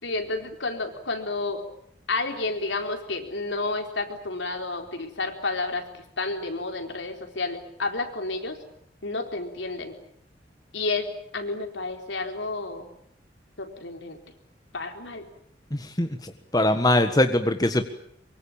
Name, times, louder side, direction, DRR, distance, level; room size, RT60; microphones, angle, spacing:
voice 1, 0.0-1.6 2.1-8.6 9.0-10.0 10.7-12.9 13.6-14.2 14.7-15.3 16.6-16.7, left 3 dB, 80° left, 4 dB, 4.4 m, -31 dB
voice 2, 15.7-17.8, left 1 dB, 20° left, 7 dB, 1.6 m, -22 dB
24.0 x 24.0 x 8.9 m, 0.68 s
head